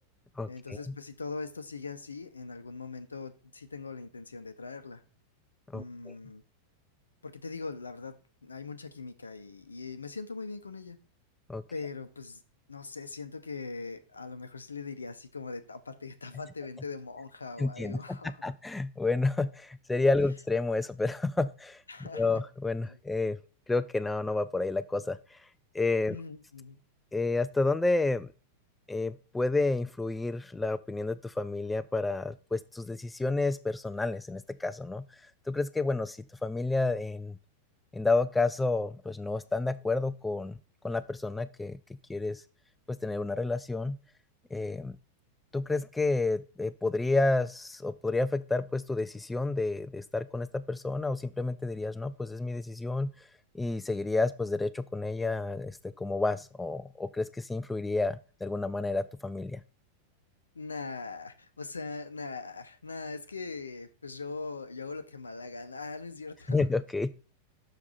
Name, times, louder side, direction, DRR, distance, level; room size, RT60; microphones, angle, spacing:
voice 1, 0.5-5.0 5.7-6.4 7.2-11.0 11.7-12.4 12.7-18.4 21.9-22.4 22.9-23.0 26.1-26.8 60.5-66.7, left 4 dB, 75° left, 0.7 m, -41 dB
voice 2, 5.7-6.1 11.5-11.6 17.6-18.2 18.4-23.4 23.7-25.4 25.7-26.2 27.1-28.3 28.9-35.0 35.5-37.4 37.9-40.5 40.8-41.8 42.1-42.4 42.9-44.0 44.5-44.9 45.5-53.1 53.5-59.6 66.5-67.1, left 3 dB, 10° left, 0.3 m, -30 dB
6.8 x 4.7 x 4.1 m
figure-of-eight pair, 90°, 0 cm